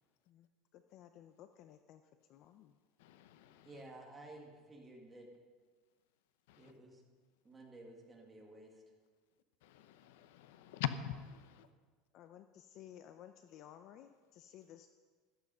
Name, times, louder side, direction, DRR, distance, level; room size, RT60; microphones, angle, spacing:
voice 1, 0.7-2.0 2.3-2.8 12.1-14.9, left 11 dB, 40° left, 0.5 m, -56 dB
voice 2, 3.0-3.7 6.5-6.7 9.6-11.7, left 10 dB, 85° left, 0.9 m, -43 dB
voice 3, 3.6-5.3 6.6-7.0 7.4-8.8, right 1 dB, 10° right, 2.0 m, -54 dB
14.5 x 12.0 x 5.5 m
cardioid pair, 175°, 0 cm